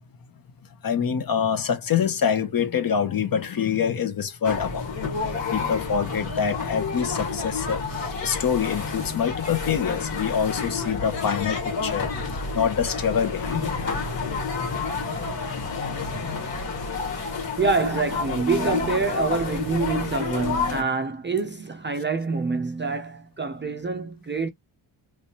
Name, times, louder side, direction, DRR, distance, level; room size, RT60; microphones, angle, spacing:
voice 1, 0.8-4.9 5.5-13.7 15.3-16.0, left 7 dB, 45° left, 0.8 m, -26 dB
sound 1, 4.4-20.8, left 4 dB, 65° left, 1.8 m, -29 dB
voice 2, 17.6-24.5, right 4 dB, 25° right, 0.4 m, -26 dB
3.2 x 3.2 x 2.8 m
wide cardioid pair, 140°, 47 cm